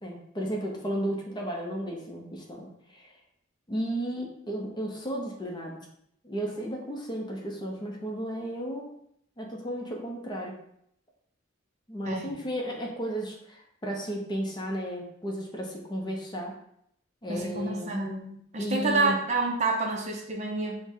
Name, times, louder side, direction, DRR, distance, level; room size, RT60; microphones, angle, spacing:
voice 1, 0.0-3.1 3.7-5.9 6.2-8.8 9.4-10.5 11.9-16.5 17.2-18.0 18.6-19.2, equal, 20° left, 0 dB, 0.6 m, -34 dB
voice 2, 17.3-20.8, right 3 dB, 35° right, 1 dB, 0.5 m, -28 dB
4.5 x 2.1 x 3.6 m, 0.72 s
head